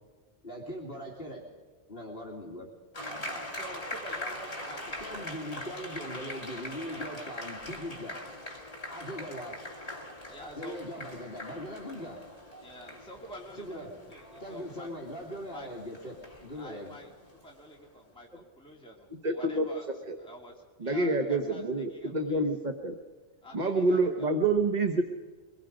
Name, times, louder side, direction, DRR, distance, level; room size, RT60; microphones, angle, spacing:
voice 1, 0.4-1.4 1.9-2.7 3.1-3.5 4.7-8.2 8.9-9.6 10.6-12.2 13.5-14.0 14.4-17.0, equal, 55° left, -2 dB, 2.7 m, -40 dB
sound 1, 2.9-17.9, left 1 dB, 30° left, 2.6 m, -42 dB
voice 2, 3.6-5.2 6.7-7.1 10.3-10.8 12.6-14.9 15.5-15.7 16.5-17.1 17.4-19.9 20.2-21.6 21.9-22.4 23.4-24.4, equal, 5° left, -1 dB, 2.2 m, -48 dB
voice 3, 19.1-19.7 20.1-20.2 20.8-23.0 23.5-25.0, right 2 dB, 40° right, 4 dB, 1.4 m, -27 dB
23.5 x 21.5 x 5.2 m, 1.5 s
omnidirectional pair, 1.2 m